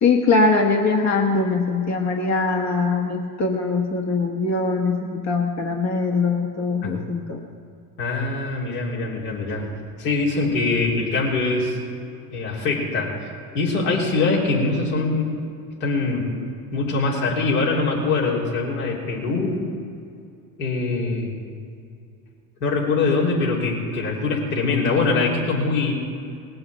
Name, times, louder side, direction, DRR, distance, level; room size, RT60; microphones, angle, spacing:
voice 1, 0.0-7.4, left 3 dB, 35° left, 2 dB, 1.5 m, -22 dB
voice 2, 8.0-9.7 10.0-11.8 12.3-13.1 13.5-15.3 15.8-16.3 16.7-19.6 20.6-21.3 22.6-25.9, left 3 dB, 75° left, -4 dB, 3.7 m, -23 dB
19.0 x 7.8 x 7.6 m, 2.4 s
hypercardioid pair, 75°, 46 cm